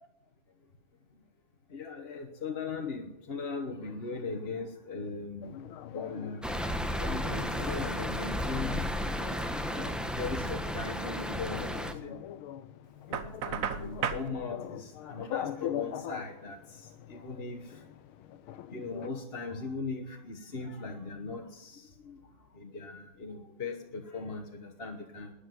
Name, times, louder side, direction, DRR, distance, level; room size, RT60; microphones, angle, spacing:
voice 1, 1.7-5.5 5.9-6.4 7.0-8.9 9.1-9.9 10.2-12.2 13.1-16.6 17.1-17.6 18.7-21.8 22.1-22.2 22.6-25.3, left 4 dB, 35° left, 2 dB, 1.2 m, -39 dB
sound 1, 5.4-19.1, left 11 dB, 85° left, 1.6 m, -43 dB
sound 2, 6.4-11.9, equal, ahead, 0.4 m, -33 dB
Knock, 13.1-14.3, right 7 dB, 55° right, 1.0 m, -33 dB
13.0 x 10.0 x 9.4 m, 0.86 s
omnidirectional pair, 2.3 m